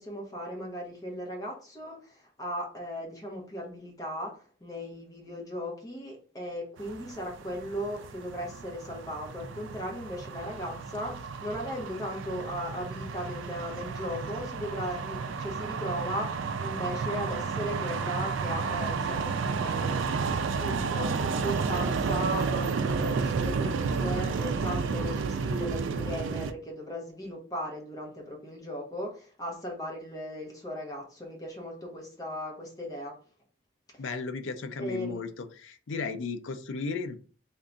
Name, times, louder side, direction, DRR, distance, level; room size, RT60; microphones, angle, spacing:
voice 1, 0.0-20.2 20.6-33.2 34.8-35.2, equal, 15° left, 0.8 m, -37 dB
sound 1, 6.8-26.5, right 5 dB, 65° right, 0.3 m, -32 dB
voice 2, 34.0-37.2, left 4 dB, 70° left, 0.4 m, -35 dB
3.6 x 2.2 x 3.8 m
head